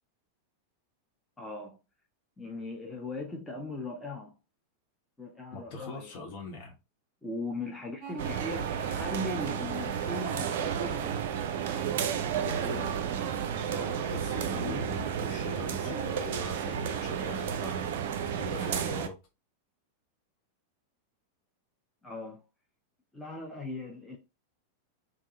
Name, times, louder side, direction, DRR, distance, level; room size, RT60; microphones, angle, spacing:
voice 1, 1.4-1.8 2.4-4.4 5.2-6.1 7.2-11.2 14.4-14.8 15.2-15.3 15.8-16.2 22.0-22.4 23.1-24.2, left 2 dB, 10° left, 0.6 m, -39 dB
voice 2, 5.5-6.8 12.4-12.9 13.7-18.0 18.3-19.2, left 3 dB, 45° left, 1.1 m, -41 dB
sound 1, 8.0-13.2, right 5 dB, 30° right, 1.2 m, -46 dB
sound 2, 8.2-19.1, right 8 dB, 55° right, 0.4 m, -32 dB
3.5 x 2.3 x 2.9 m
figure-of-eight pair, 90°, 0 cm